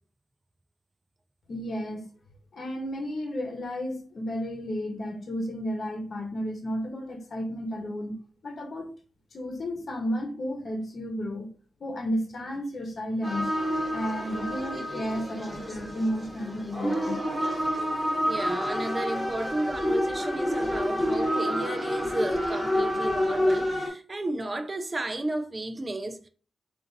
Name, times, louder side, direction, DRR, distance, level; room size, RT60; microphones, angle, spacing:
voice 1, 1.5-2.1 2.5-8.9 9.3-11.5 11.8-17.2, equal, 50° left, 1.0 m, -33 dB
sound 1, 13.2-23.9, equal, 5° left, 1.0 m, -28 dB
voice 2, 18.2-26.3, right 2 dB, 25° right, 0.5 m, -33 dB
4.1 x 2.6 x 3.9 m
wide cardioid pair, 150°, 0 cm